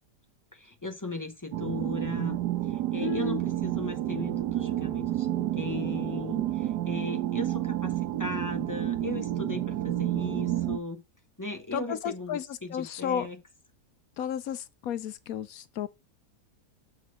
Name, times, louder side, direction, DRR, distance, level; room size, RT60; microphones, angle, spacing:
voice 1, 0.5-2.4 2.7-11.0 11.4-13.4, left 2 dB, 15° left, 0.6 m, -37 dB
sound 1, 1.5-10.8, right 13 dB, 85° right, 1.3 m, -30 dB
voice 2, 3.0-3.4 11.7-12.4 12.7-13.3 14.2-15.9, left 9 dB, 70° left, 1.0 m, -32 dB
6.4 x 4.9 x 4.9 m
omnidirectional pair, 1.7 m